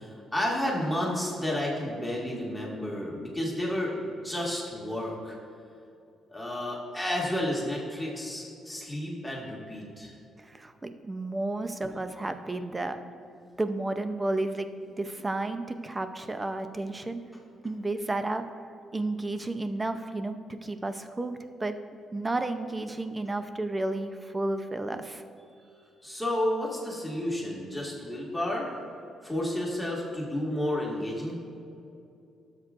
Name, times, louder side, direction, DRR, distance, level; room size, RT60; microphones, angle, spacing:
voice 1, 0.0-5.4 6.3-10.1 11.8-11.9 26.0-28.8 29.2-31.4, left 1 dB, 5° left, -4 dB, 2.0 m, -31 dB
voice 2, 10.4-13.0 13.6-17.2 17.6-18.4 18.9-21.7 22.1-25.2, right 2 dB, 20° right, 9 dB, 0.5 m, -32 dB
12.5 x 7.4 x 2.5 m, 2.6 s
cardioid pair, 90°, 0 cm